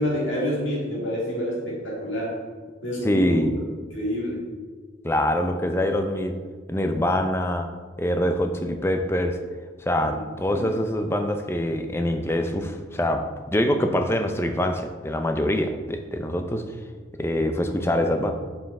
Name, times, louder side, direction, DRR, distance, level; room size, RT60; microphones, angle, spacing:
voice 1, 0.0-2.3 2.8-3.4 3.9-4.4 10.0-10.2 10.5-10.7, equal, 75° left, -4 dB, 2.1 m, -28 dB
voice 2, 3.0-3.6 5.0-6.3 6.7-7.7 8.0-9.4 9.8-16.6 17.2-18.3, left 1 dB, 10° left, 6 dB, 0.4 m, -24 dB
5.6 x 5.6 x 4.2 m, 1.5 s
head